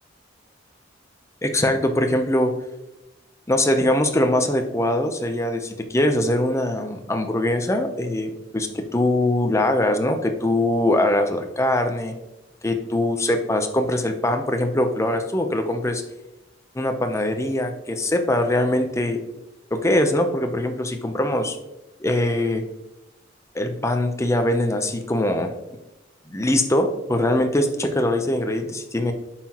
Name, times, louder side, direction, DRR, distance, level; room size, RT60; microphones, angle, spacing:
voice 1, 1.4-2.5 3.5-12.1 12.6-16.0 16.7-19.2 19.7-21.6 22.0-22.6 23.5-25.5 26.3-29.1, left 1 dB, 15° left, 5 dB, 0.7 m, -22 dB
8.8 x 5.8 x 3.0 m, 0.97 s
head